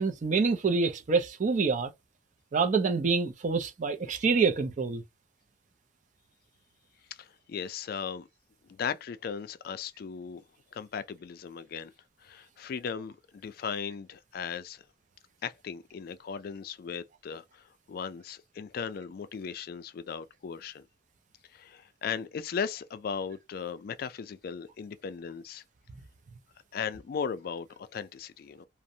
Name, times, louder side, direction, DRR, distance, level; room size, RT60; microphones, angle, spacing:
voice 1, 0.0-1.9 2.5-5.0, right 4 dB, 40° right, 0.4 m, -26 dB
voice 2, 7.2-8.3 8.7-10.4 10.7-11.9 12.2-14.8 15.4-20.9 21.5-25.6 26.7-28.7, left 6 dB, 55° left, 0.3 m, -37 dB
2.5 x 2.0 x 2.6 m
head